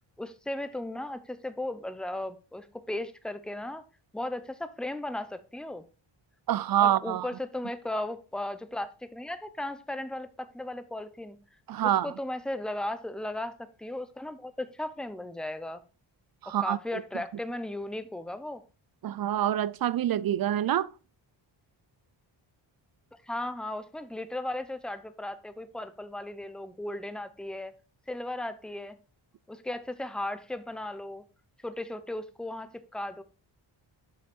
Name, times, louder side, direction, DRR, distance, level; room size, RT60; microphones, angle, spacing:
voice 1, 0.2-3.8 4.1-5.8 6.8-11.4 11.8-15.8 16.5-18.6 23.2-27.7 28.1-29.0 29.5-31.2 31.6-33.2, left 1 dB, ahead, 0.7 m, -36 dB
voice 2, 6.5-7.3 11.7-12.1 16.4-16.8 19.0-20.9, right 11 dB, 50° right, 0.5 m, -26 dB
8.1 x 5.7 x 4.3 m
cardioid pair, 95°, 47 cm